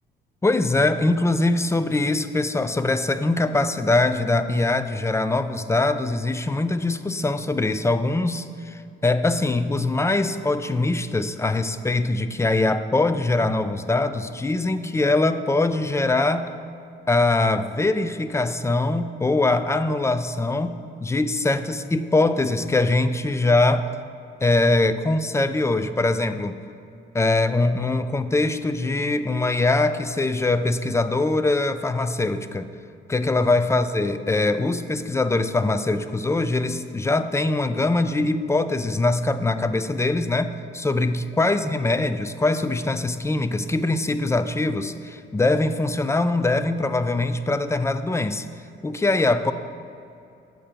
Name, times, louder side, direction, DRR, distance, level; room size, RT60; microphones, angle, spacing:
voice 1, 0.4-16.5 17.1-23.9 24.4-26.6 27.1-32.7 33.1-48.5 48.8-49.5, left 2 dB, 15° left, 11 dB, 0.3 m, -22 dB
7.8 x 4.4 x 6.7 m, 2.6 s
cardioid pair, 90°, 20 cm